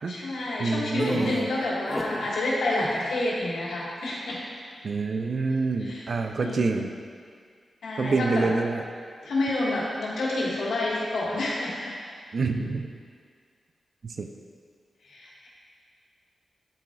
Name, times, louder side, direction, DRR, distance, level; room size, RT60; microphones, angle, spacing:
voice 1, 0.1-4.4 5.8-6.1 6.4-6.6 7.8-8.5 9.2-12.0 15.0-15.5, left 2 dB, 90° left, -6 dB, 1.6 m, -29 dB
voice 2, 0.6-1.5 4.8-6.9 8.0-8.8 12.3-12.9 14.0-14.3, right 3 dB, 60° right, 5 dB, 0.5 m, -27 dB
sound 1, 1.0-2.3 2.7-3.1, left 1 dB, 15° left, 0.7 m, -32 dB
11.5 x 4.5 x 2.3 m, 2.1 s
cardioid pair, 75°, 0 cm